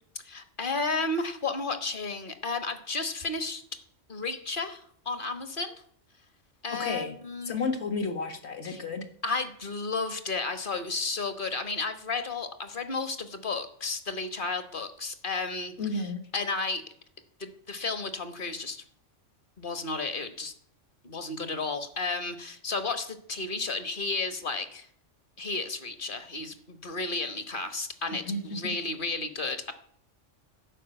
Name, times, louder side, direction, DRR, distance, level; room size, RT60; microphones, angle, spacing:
voice 1, 0.2-3.6 4.1-5.7 6.6-7.5 8.6-8.8 9.2-15.7 16.3-16.8 17.4-18.8 19.6-20.5 21.0-24.9 25.4-29.7, left 3 dB, 45° left, 10 dB, 1.4 m, -32 dB
voice 2, 6.8-7.1 7.5-9.0 15.8-16.2 28.1-28.7, left 3 dB, 60° left, 7 dB, 1.8 m, -32 dB
11.5 x 6.1 x 9.0 m, 0.62 s
omnidirectional pair, 1.3 m